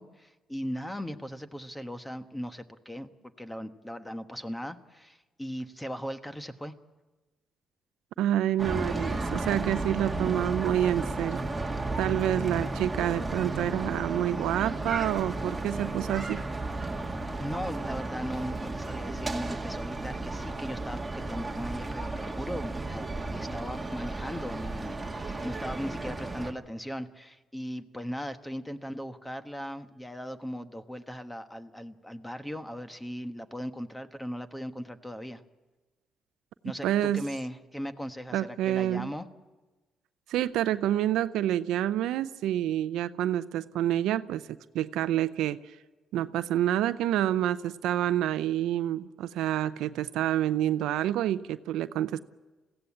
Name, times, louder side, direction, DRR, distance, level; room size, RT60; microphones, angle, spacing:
voice 1, 0.0-3.1 3.4-6.7 17.4-23.0 23.3-35.4 36.6-39.3, equal, 10° left, 9 dB, 1.2 m, -38 dB
voice 2, 8.2-11.4 12.0-16.4 36.8-37.3 38.3-39.1 40.3-44.5 44.7-45.6 46.1-52.2, right 12 dB, 90° right, 14 dB, 0.6 m, -28 dB
sound 1, 8.6-26.5, right 2 dB, 15° right, 1.9 m, -33 dB
21.5 x 16.0 x 8.6 m, 1.2 s
cardioid pair, 90°, 0 cm